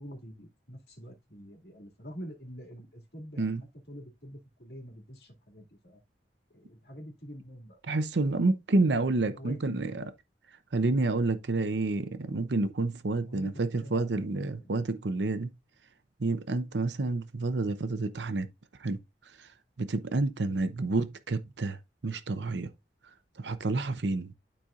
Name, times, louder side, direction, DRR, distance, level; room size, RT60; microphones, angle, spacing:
voice 1, 0.0-3.5 3.9-6.0 6.5-7.8 8.8-10.0 13.2-14.7, equal, 65° left, 2.3 m, -46 dB
voice 2, 7.9-10.0 10.7-15.5 16.2-18.5 18.8-19.0 19.8-21.8 22.0-22.7 23.4-24.3, right 2 dB, 85° right, 0.7 m, -29 dB
12.5 x 4.2 x 2.4 m
head